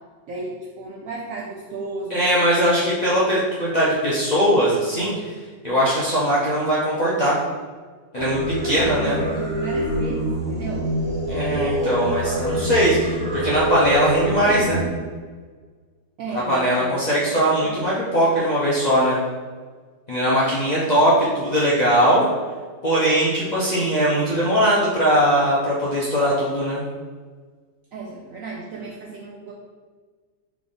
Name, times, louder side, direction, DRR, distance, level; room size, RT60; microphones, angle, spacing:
voice 1, 0.3-2.3 2.6-2.8 8.6-10.9 16.2-17.7 27.9-29.5, right 3 dB, 75° right, -3 dB, 0.8 m, -34 dB
voice 2, 2.1-5.3 5.6-7.4 8.1-8.4 8.6-9.2 11.3-14.8 16.3-19.2 20.1-22.2 22.8-26.8, equal, 70° left, -8 dB, 0.4 m, -20 dB
Singing, 8.2-14.9, equal, 40° right, 1.5 m, -25 dB
3.6 x 3.5 x 3.8 m, 1.5 s
omnidirectional pair, 1.9 m